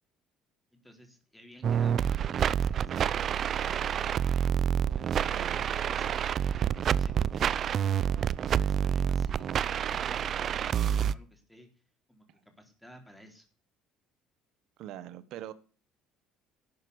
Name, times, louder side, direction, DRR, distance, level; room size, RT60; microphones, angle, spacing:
voice 1, 0.7-4.2 4.9-6.3 6.5-8.3 8.5-11.7 12.1-13.5, equal, 5° left, 3.9 m, -55 dB
sound 1, 1.6-11.1, right 8 dB, 45° right, 0.6 m, -28 dB
voice 2, 5.3-5.6 14.8-15.5, right 12 dB, 65° right, 1.1 m, -42 dB
12.0 x 7.8 x 8.0 m
cardioid pair, 130°, 0 cm